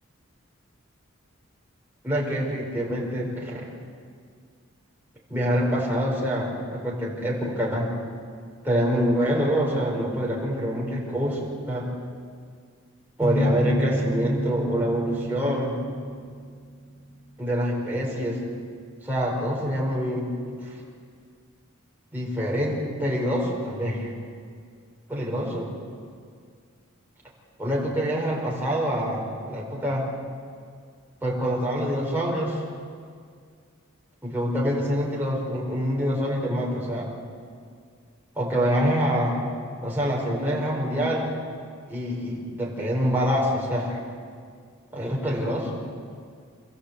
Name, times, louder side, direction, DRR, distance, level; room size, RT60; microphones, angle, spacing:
voice 1, 2.0-3.7 5.3-7.9 8.6-11.4 11.7-11.9 13.2-15.8 17.4-18.4 19.0-20.7 22.1-24.1 25.1-25.7 27.6-30.0 31.2-32.6 34.2-37.1 38.4-39.4 39.8-41.3 41.9-44.0 44.9-45.8, equal, 10° right, -4 dB, 5.0 m, -26 dB
sound 1, 13.2-16.9, equal, 25° left, 2.6 m, -29 dB
28.0 x 14.5 x 8.3 m, 2.1 s
head